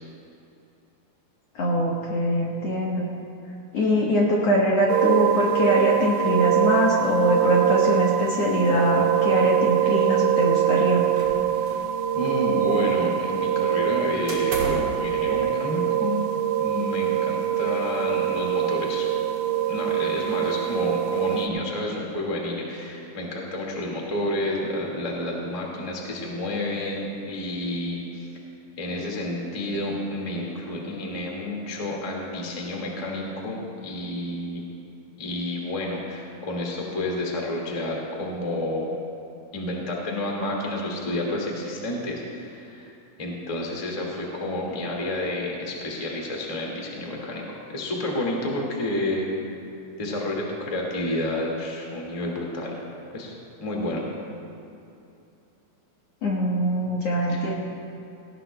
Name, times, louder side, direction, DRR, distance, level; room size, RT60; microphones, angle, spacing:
voice 1, 1.6-3.1 3.7-11.0 56.2-57.5, equal, 60° left, -4 dB, 1.8 m, -23 dB
sound 1, 4.9-21.5, right 11 dB, 90° right, 2.6 m, -23 dB
sound 2, 11.2-11.9 12.2-13.1 14.3-15.0, right 2 dB, 50° right, 3.0 m, -34 dB
voice 2, 12.1-16.1 16.6-19.1 19.7-28.3 28.8-34.6 35.2-38.9 39.5-42.9 43.2-49.3 50.0-52.8 53.1-53.3 53.6-54.0 57.3-57.5, left 1 dB, 25° left, -2 dB, 0.8 m, -30 dB
18.5 x 17.5 x 2.2 m, 2.7 s
omnidirectional pair, 4.1 m